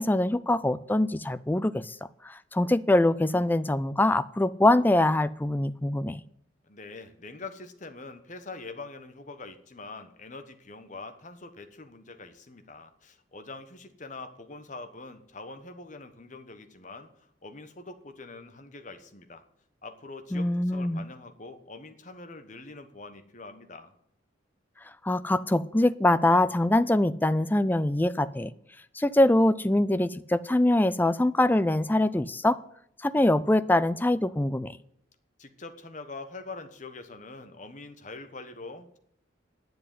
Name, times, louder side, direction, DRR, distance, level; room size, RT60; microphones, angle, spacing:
voice 1, 0.0-2.0 2.2-6.2 20.3-21.0 25.0-28.5 29.0-32.6 33.0-34.8, left 1 dB, 10° left, 15 dB, 0.4 m, -23 dB
voice 2, 6.6-19.4 19.8-23.9 35.4-39.0, left 3 dB, 40° left, 8 dB, 1.2 m, -44 dB
10.0 x 7.9 x 9.3 m, 0.73 s
head